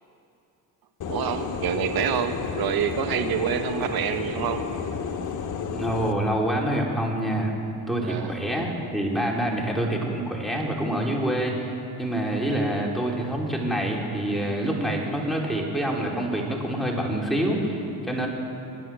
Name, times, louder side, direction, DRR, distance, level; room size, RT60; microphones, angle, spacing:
sound 1, 1.0-6.1, left 6 dB, 45° left, 1.3 m, -31 dB
voice 1, 1.1-4.7 8.0-8.3, right 8 dB, 60° right, 7 dB, 1.4 m, -27 dB
voice 2, 5.7-7.5 7.9-11.7 12.0-18.3, right 1 dB, ahead, -2 dB, 3.5 m, -26 dB
21.5 x 9.2 x 6.1 m, 2.9 s
supercardioid pair, 70°, 41 cm